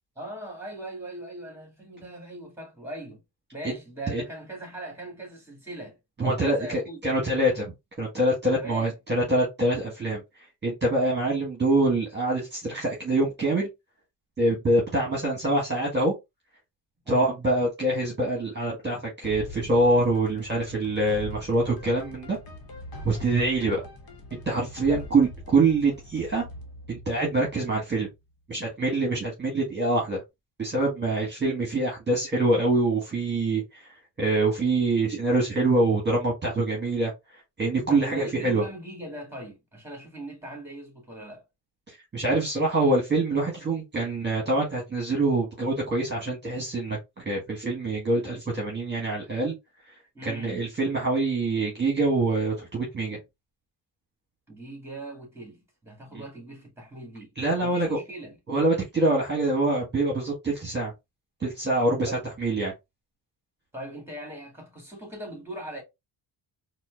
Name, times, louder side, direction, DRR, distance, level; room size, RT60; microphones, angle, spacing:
voice 1, 0.2-3.2 3.5-7.0 8.5-8.9 17.0-17.3 24.9-25.1 37.9-41.4 50.1-50.6 54.5-57.3 57.6-58.4 62.1-62.2 63.7-65.8, right 1 dB, 5° right, 2.0 m, -40 dB
voice 2, 6.2-10.2 10.6-13.7 14.4-16.1 17.1-22.4 23.0-23.9 24.3-26.4 26.9-28.1 28.5-30.2 30.6-33.9 34.2-37.1 37.6-38.6 41.9-49.5 50.2-53.2 56.1-56.2 57.4-58.0 58.5-60.9 61.4-62.1 62.4-62.7, right 2 dB, 25° right, 1.4 m, -25 dB
sound 1, 19.2-28.1, left 1 dB, 55° left, 1.2 m, -43 dB
4.3 x 2.4 x 2.3 m
cardioid pair, 100°, 44 cm